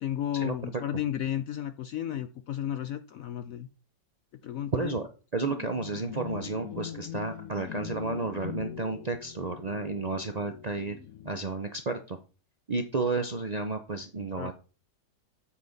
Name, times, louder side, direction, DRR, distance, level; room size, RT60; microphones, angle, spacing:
voice 1, 0.0-3.7 4.4-5.0 14.4-14.5, left 11 dB, 70° left, 11 dB, 0.8 m, -33 dB
voice 2, 4.7-11.0 11.2-12.2 12.7-14.5, right 3 dB, 90° right, 6 dB, 0.3 m, -32 dB
sound 1, 5.4-11.7, left 9 dB, 55° left, 1.3 m, -42 dB
8.6 x 7.3 x 4.0 m, 0.34 s
omnidirectional pair, 1.9 m